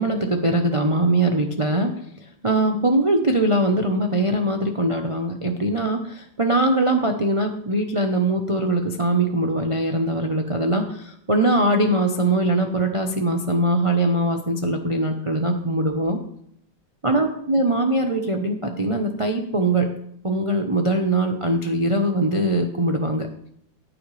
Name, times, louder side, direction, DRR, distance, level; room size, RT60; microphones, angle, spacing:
voice 1, 0.0-1.9 2.4-16.2 17.0-19.9 20.2-23.3, right 1 dB, 30° right, 4 dB, 0.6 m, -22 dB
14.5 x 9.4 x 3.3 m, 0.68 s
omnidirectional pair, 2.0 m